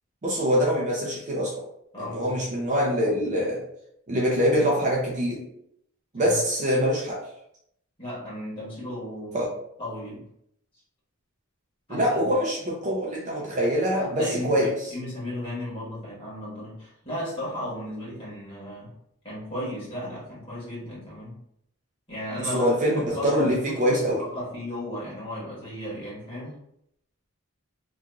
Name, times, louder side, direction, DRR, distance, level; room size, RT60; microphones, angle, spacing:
voice 1, 0.2-1.5 2.0-3.6 4.1-5.4 6.1-7.2 9.3-9.5 11.9-14.7 22.5-24.2, equal, 35° right, -3 dB, 0.5 m, -24 dB
voice 2, 1.9-2.5 6.1-6.4 8.0-9.5 9.8-10.2 11.9-12.3 14.0-18.9 19.2-21.4 22.1-26.5, left 1 dB, 25° left, -8 dB, 1.3 m, -35 dB
2.9 x 2.4 x 2.3 m, 0.75 s
head